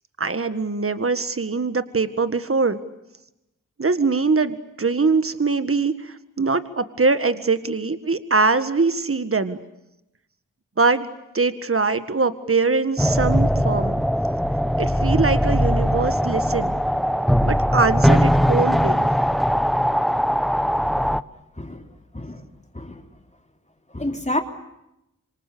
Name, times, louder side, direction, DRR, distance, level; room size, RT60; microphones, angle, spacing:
voice 1, 0.2-2.8 3.8-9.6 10.8-11.1 11.3-14.0 14.8-16.7 17.4-19.1, right 4 dB, 45° right, 11 dB, 1.8 m, -22 dB
sound 1, 13.0-21.2, equal, ahead, 0.9 m, -20 dB
voice 2, 23.9-24.4, left 1 dB, 20° left, 4 dB, 3.5 m, -28 dB
26.5 x 25.0 x 8.4 m, 0.87 s
cardioid pair, 50°, 32 cm